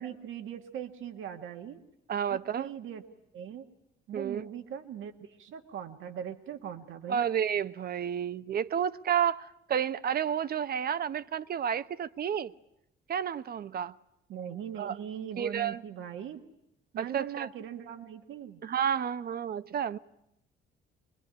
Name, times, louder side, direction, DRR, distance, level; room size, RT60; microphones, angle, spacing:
voice 1, 0.0-1.8 2.3-3.0 3.3-3.7 4.1-7.3 14.3-16.4 16.9-18.6, right 9 dB, 80° right, 1.9 m, -40 dB
voice 2, 2.1-2.7 4.1-4.4 7.1-12.5 13.1-13.9 14.8-14.9 15.4-15.8 17.0-17.5 18.6-20.0, right 8 dB, 50° right, 0.9 m, -31 dB
25.5 x 21.0 x 9.9 m
cardioid pair, 95°, 20 cm